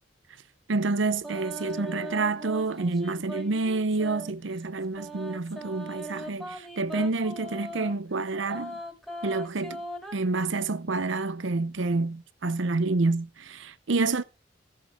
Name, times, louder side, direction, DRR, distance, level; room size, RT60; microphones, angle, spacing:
voice 1, 0.7-8.8 9.2-9.8 10.1-14.2, right 3 dB, 80° right, 0.8 m, -28 dB
sound 1, 1.2-4.3 5.0-8.0 8.5-10.1, equal, ahead, 3.0 m, -39 dB
17.5 x 7.1 x 4.9 m
head